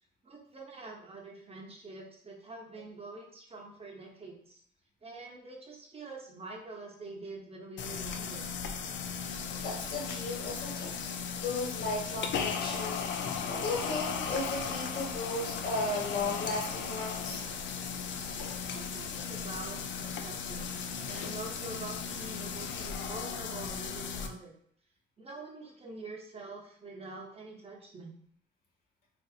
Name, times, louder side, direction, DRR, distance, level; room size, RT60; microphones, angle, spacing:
voice 1, 0.2-4.6 5.0-8.4 18.7-24.5 25.2-28.1, right 3 dB, 30° right, -1 dB, 0.8 m, -46 dB
sound 1, 7.8-24.3, left 6 dB, 65° left, 0.5 m, -36 dB
voice 2, 9.6-11.1 11.4-13.1 13.5-17.5, left 2 dB, 50° left, -2 dB, 1.3 m, -35 dB
3.8 x 2.6 x 2.4 m, 0.62 s
cardioid pair, 90°, 20 cm